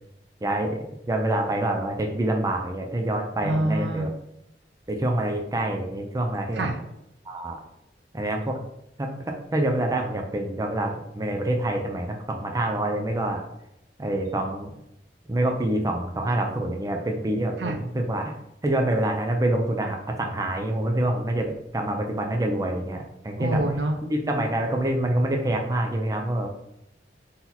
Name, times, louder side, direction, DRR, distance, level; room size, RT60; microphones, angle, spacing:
voice 1, 0.4-4.1 4.9-6.7 7.3-7.6 8.1-8.6 9.0-13.4 14.0-14.7 15.3-18.3 18.6-23.6 24.1-26.5, right 1 dB, 20° right, 2 dB, 0.5 m, -26 dB
voice 2, 3.4-4.1 6.5-6.8 17.6-17.8 23.4-24.0, right 1 dB, 85° right, 4 dB, 0.7 m, -26 dB
3.9 x 2.9 x 4.1 m, 0.83 s
head